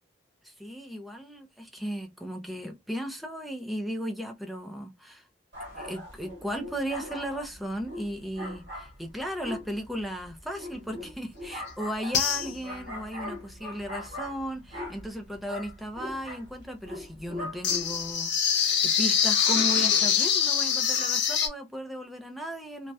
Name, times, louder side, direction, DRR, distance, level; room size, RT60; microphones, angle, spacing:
voice 1, 0.4-5.3 5.7-22.9, equal, ahead, 0.3 m, -36 dB
sound 1, 5.5-18.1, left 1 dB, 65° right, 1.3 m, -41 dB
sound 2, 11.7-11.8 12.1-12.8 17.6-21.5, left 7 dB, 65° left, 0.6 m, -24 dB
2.7 x 2.0 x 2.2 m
head